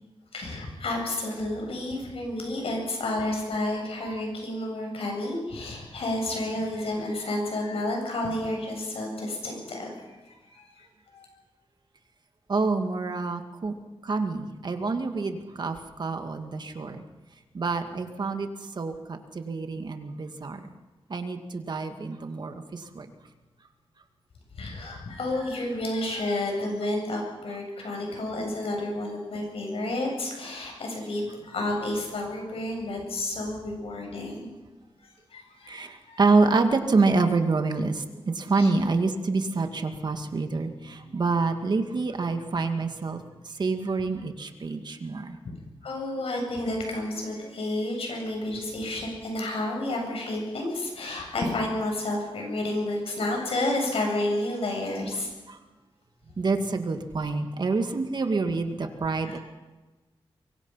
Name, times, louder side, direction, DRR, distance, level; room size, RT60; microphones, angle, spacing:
voice 1, 0.3-10.7 11.1-11.3 24.5-34.5 35.0-36.2 38.5-38.7 45.8-55.3 59.1-59.4, left 1 dB, 85° left, 1 dB, 7.9 m, -31 dB
voice 2, 12.5-13.7 14.0-17.0 17.5-18.5 18.8-20.6 21.1-23.1 35.7-45.4 55.5-55.6 56.4-59.4, right 3 dB, 50° right, 6 dB, 2.0 m, -27 dB
24.5 x 23.5 x 5.8 m, 1.2 s
wide cardioid pair, 150°, 10 cm